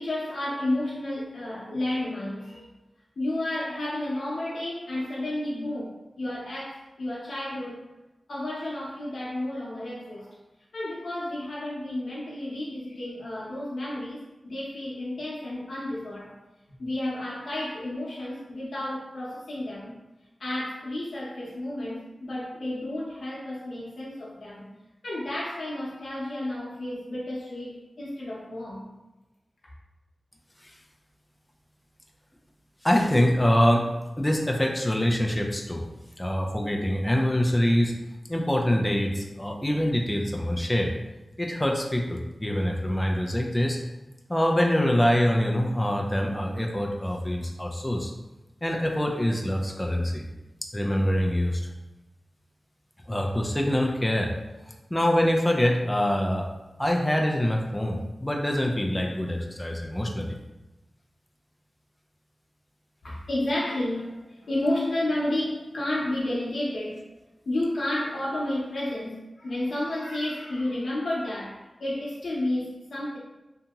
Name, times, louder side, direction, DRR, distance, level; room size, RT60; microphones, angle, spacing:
voice 1, 0.0-2.7 3.2-7.9 8.3-10.4 10.7-16.3 16.8-19.9 20.4-24.7 25.0-28.9 63.0-67.1 67.5-73.2, left 1 dB, 80° left, -7 dB, 0.7 m, -31 dB
voice 2, 32.8-33.9 34.2-35.8 36.2-37.9 38.3-40.9 41.4-43.8 44.3-48.1 48.6-50.2 50.7-51.6 53.1-54.3 54.9-56.5 56.8-60.4, equal, 15° left, 1 dB, 0.4 m, -24 dB
2.8 x 2.7 x 2.3 m, 1.0 s
wide cardioid pair, 105°, 0 cm